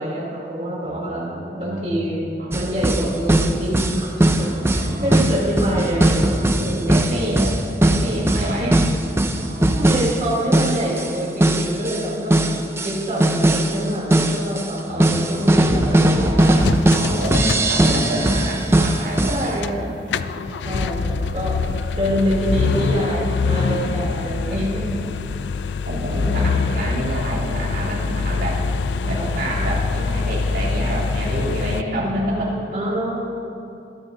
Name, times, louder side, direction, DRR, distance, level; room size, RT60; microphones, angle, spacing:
voice 1, 0.0-1.3 1.6-2.2 2.5-7.0 8.4-8.7 9.6-16.7 17.8-18.2 19.3-20.2 20.6-21.5 22.0-24.8 26.1-26.5 29.0-29.3 32.0-33.2, equal, 35° right, -5 dB, 3.1 m, -26 dB
voice 2, 0.8-2.7 4.4-5.3 6.5-8.7 9.3-10.3 14.8-19.9 20.6-20.9 21.9-22.1 23.8-24.6 25.8-28.6 29.1-32.5, right 1 dB, 70° right, -7 dB, 3.2 m, -29 dB
sound 1, 2.5-11.1 11.4-13.8 14.1-19.5, right 1 dB, 15° right, 0.4 m, -19 dB
sound 2, 16.6-18.3 18.7-18.8 19.3-19.7 20.0-31.8, left 4 dB, 85° left, 0.4 m, -24 dB
21.5 x 9.8 x 2.7 m, 2.8 s
head